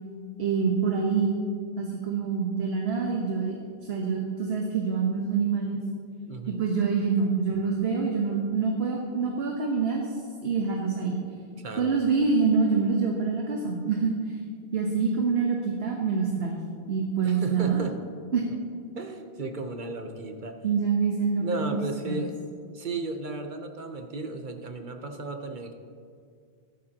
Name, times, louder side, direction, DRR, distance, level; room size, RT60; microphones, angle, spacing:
voice 1, 0.4-1.4 1.8-5.8 6.5-10.1 10.4-11.2 11.8-14.4 14.7-16.5 16.9-17.9 18.3-18.5 20.6-21.8 22.1-22.2, right 5 dB, 80° right, 0 dB, 1.4 m, -26 dB
voice 2, 6.3-6.6 11.6-12.0 17.2-18.0 18.9-20.6 21.4-22.3 22.7-25.7, right 2 dB, 50° right, 6 dB, 1.0 m, -35 dB
15.5 x 13.0 x 2.9 m, 2.2 s
omnidirectional pair, 1.1 m